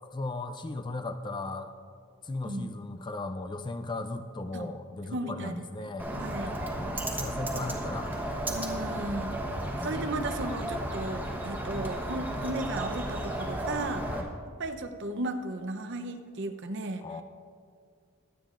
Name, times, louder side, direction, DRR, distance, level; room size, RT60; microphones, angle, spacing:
voice 1, 0.0-1.7 2.2-6.1 6.8-8.1 9.5-9.9 14.1-14.3 17.0-17.2, left 2 dB, 20° left, 8 dB, 0.4 m, -37 dB
voice 2, 5.1-6.6 8.5-9.4 9.8-14.1 14.6-17.0, right 2 dB, 55° right, 7 dB, 0.8 m, -35 dB
Bird, 6.0-14.2, right 1 dB, 10° right, 1.2 m, -34 dB
22.5 x 9.0 x 2.5 m, 2.2 s
head